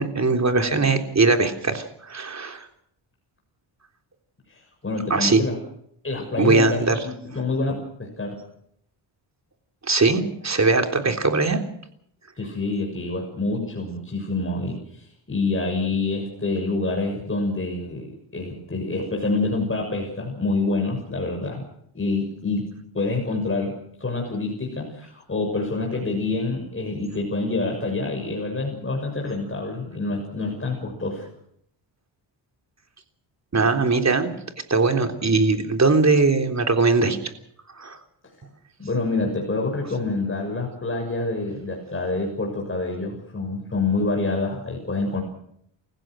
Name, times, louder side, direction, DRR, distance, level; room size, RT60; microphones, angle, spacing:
voice 1, 0.0-2.7 5.1-5.4 6.4-7.0 9.8-11.6 33.5-34.3 34.7-37.2 37.8-38.0, right 3 dB, 35° right, 5 dB, 3.6 m, -20 dB
voice 2, 4.5-5.6 6.0-8.4 12.4-21.6 21.9-22.7 22.9-31.3 38.8-45.2, left 3 dB, 25° left, 1 dB, 6.8 m, -27 dB
29.0 x 15.5 x 6.4 m, 0.69 s
cardioid pair, 75°, 48 cm